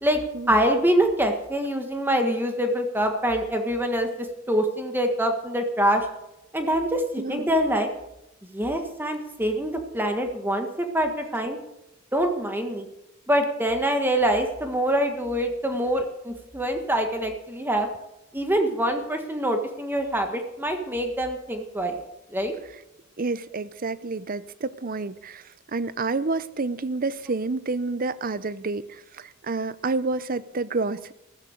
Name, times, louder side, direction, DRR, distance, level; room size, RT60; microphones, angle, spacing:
voice 1, 0.5-6.1 6.5-7.9 8.5-11.6 12.1-12.8 13.3-17.9 18.3-22.0 22.3-22.5, right 1 dB, 10° right, 5 dB, 1.5 m, -25 dB
voice 2, 7.2-7.5 23.2-25.4 25.7-31.1, right 3 dB, 45° right, 16 dB, 0.7 m, -29 dB
14.0 x 13.5 x 6.5 m, 0.87 s
head